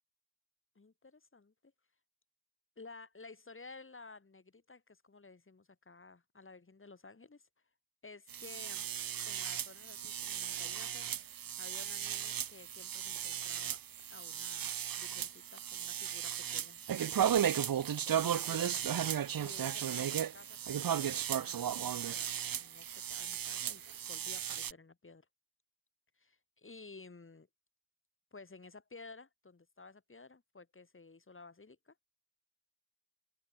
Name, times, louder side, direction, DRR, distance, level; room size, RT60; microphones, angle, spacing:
voice 1, 0.7-1.7 2.8-7.5 8.0-8.9 9.3-11.1 11.6-13.8 14.1-18.9 19.4-23.8 24.1-25.3 26.2-27.5 28.3-31.9, left 3 dB, 35° left, 6.2 m, -54 dB
sound 1, 8.3-24.7, right 9 dB, 65° right, 0.8 m, -35 dB
open air
wide cardioid pair, 160°, 38 cm